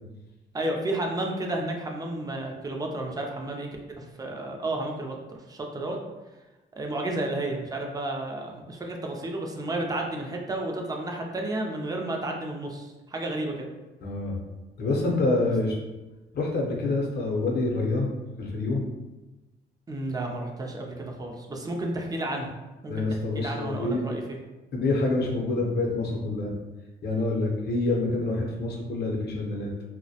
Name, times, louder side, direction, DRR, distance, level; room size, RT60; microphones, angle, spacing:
voice 1, 0.5-5.2 5.5-6.0 6.8-13.7 19.9-22.6 22.8-24.2, right 1 dB, 20° right, 1 dB, 0.4 m, -32 dB
voice 2, 14.0-14.4 14.8-15.8 16.3-18.1 18.4-18.8 22.9-24.0 24.7-26.5 27.0-29.7, left 2 dB, 55° left, 0 dB, 0.6 m, -27 dB
2.2 x 2.1 x 2.7 m, 1.1 s
cardioid pair, 90°, 20 cm